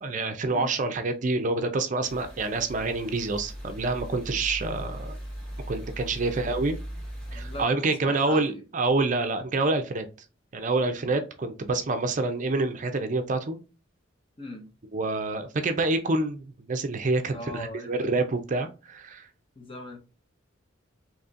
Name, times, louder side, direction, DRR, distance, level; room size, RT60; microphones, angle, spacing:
voice 1, 0.0-5.2 5.7-6.8 7.3-10.1 10.5-13.6 14.9-19.3, right 3 dB, 40° right, 0.5 m, -27 dB
sound 1, 2.0-7.6, equal, 5° left, 1.8 m, -39 dB
voice 2, 7.3-8.6 14.4-14.7 17.3-18.1 19.6-20.0, left 1 dB, 25° left, 0.7 m, -40 dB
4.1 x 2.9 x 2.4 m
head